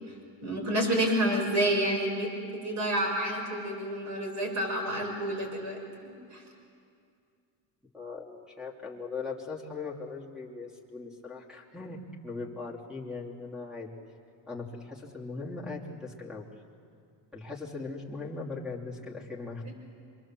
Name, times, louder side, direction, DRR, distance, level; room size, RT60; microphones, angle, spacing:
voice 1, 0.4-6.4 19.7-19.8, right 1 dB, 35° right, 1 dB, 6.7 m, -29 dB
voice 2, 7.9-13.9 14.5-16.5 17.3-19.7, left 3 dB, ahead, 0 dB, 3.0 m, -39 dB
27.0 x 22.5 x 7.6 m, 2.3 s
cardioid pair, 135°, 48 cm